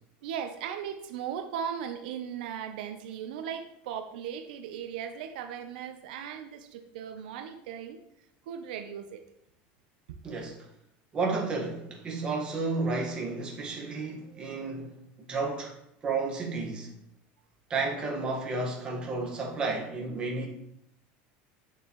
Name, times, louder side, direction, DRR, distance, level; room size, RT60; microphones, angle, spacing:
voice 1, 0.2-8.0 8.5-9.2, right 8 dB, 85° right, 0.8 m, -37 dB
voice 2, 10.2-10.7 11.1-14.9 15.3-15.7 16.0-16.9 17.7-20.5, right 3 dB, 20° right, 1.6 m, -32 dB
8.8 x 6.7 x 3.1 m
cardioid pair, 170°, 5 cm